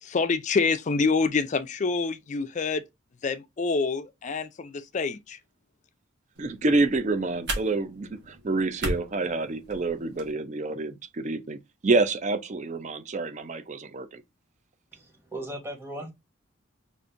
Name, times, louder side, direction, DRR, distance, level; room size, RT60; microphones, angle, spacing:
voice 1, 0.0-2.8 3.2-5.4, left 4 dB, 35° left, 0.4 m, -26 dB
voice 2, 6.4-14.2, right 3 dB, 35° right, 0.4 m, -28 dB
sound 1, 6.4-10.3, right 1 dB, 55° right, 1.2 m, -37 dB
voice 3, 14.9-16.1, right 1 dB, 10° right, 1.2 m, -37 dB
5.1 x 2.5 x 2.5 m
head